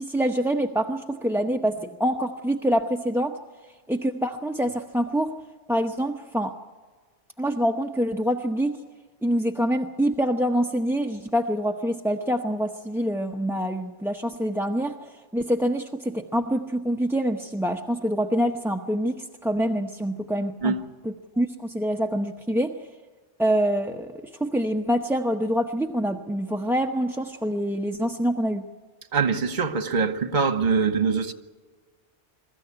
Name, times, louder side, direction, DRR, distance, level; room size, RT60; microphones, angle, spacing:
voice 1, 0.0-3.3 3.9-5.3 5.7-6.5 7.4-8.8 9.2-20.8 21.0-22.7 23.4-28.6, equal, 5° right, 0.7 m, -26 dB
voice 2, 29.1-31.3, right 5 dB, 45° right, 1.3 m, -23 dB
23.5 x 14.0 x 9.8 m
omnidirectional pair, 1.2 m